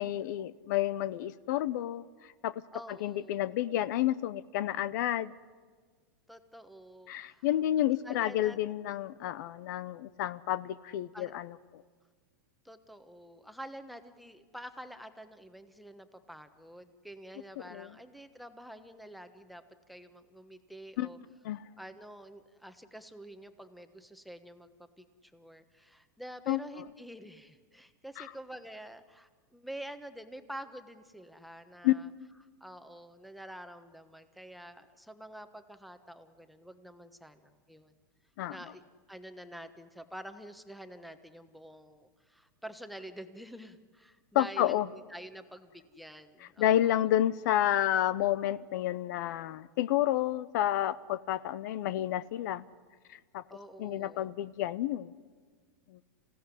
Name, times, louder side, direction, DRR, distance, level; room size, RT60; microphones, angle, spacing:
voice 1, 0.0-2.0 2.4-2.6 3.0-5.3 7.1-11.5 17.7-17.9 21.0-21.1 21.4-21.6 26.5-26.6 28.2-28.3 31.8-32.0 38.4-38.6 44.3-44.9 46.6-52.6 53.1-53.4 53.8-55.1, left 12 dB, 65° left, 17 dB, 0.7 m, -30 dB
voice 2, 2.7-3.5 6.3-7.5 8.0-8.6 11.1-11.3 12.6-21.2 21.8-32.1 32.6-37.9 38.5-38.8 39.1-47.1 53.5-54.3, right 1 dB, ahead, 10 dB, 1.2 m, -48 dB
26.5 x 16.5 x 9.9 m, 1.5 s
supercardioid pair, 140°, 11 cm